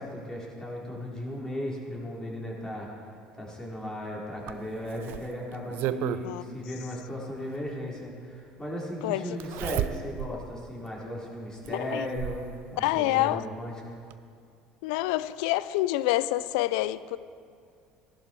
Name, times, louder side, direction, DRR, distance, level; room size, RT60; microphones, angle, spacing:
voice 1, 0.0-2.9 3.4-13.7, left 1 dB, 15° left, 4.0 m, -36 dB
Zipper (clothing), 4.5-6.3 7.7-7.8 9.4-10.4 10.9-11.0 11.6-12.5 13.7-13.8 14.1-14.2, right 13 dB, 60° right, 0.5 m, -33 dB
voice 2, 6.0-6.5 9.0-9.2 11.7-12.1 12.8-13.4 14.8-17.2, left 16 dB, 70° left, 0.4 m, -27 dB
16.0 x 11.5 x 4.5 m
hypercardioid pair, 70°, 4 cm